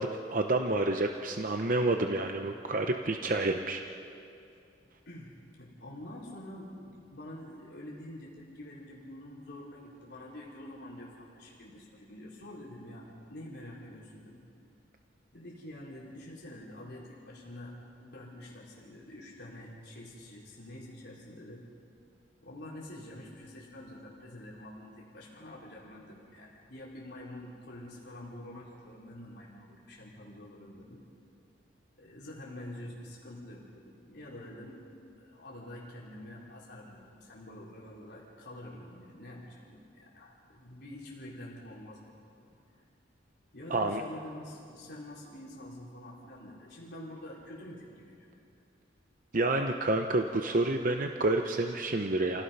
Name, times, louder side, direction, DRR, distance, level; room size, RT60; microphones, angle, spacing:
voice 1, 0.0-3.8 43.7-44.0 49.3-52.4, right 2 dB, 45° right, 5 dB, 0.8 m, -29 dB
voice 2, 5.1-14.5 15.3-21.6 22.4-31.0 32.0-42.5 43.5-48.3, left 1 dB, 60° left, -5 dB, 3.9 m, -47 dB
29.0 x 17.5 x 5.6 m, 2.6 s
head